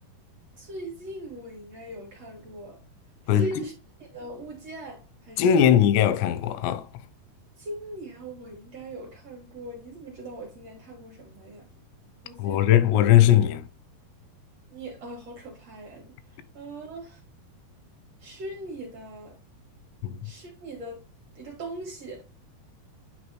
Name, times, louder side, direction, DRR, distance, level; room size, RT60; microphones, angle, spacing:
voice 1, 0.6-2.8 3.2-3.7 4.0-5.6 7.6-11.7 12.2-12.9 14.7-16.1 16.5-17.2 18.2-19.4 20.2-21.0 21.4-22.2, right 1 dB, 55° right, 2.0 m, -40 dB
voice 2, 3.3-3.7 5.4-6.8 12.4-13.6 20.0-20.2, left 10 dB, 90° left, 2.8 m, -19 dB
9.7 x 3.3 x 3.1 m
omnidirectional pair, 4.7 m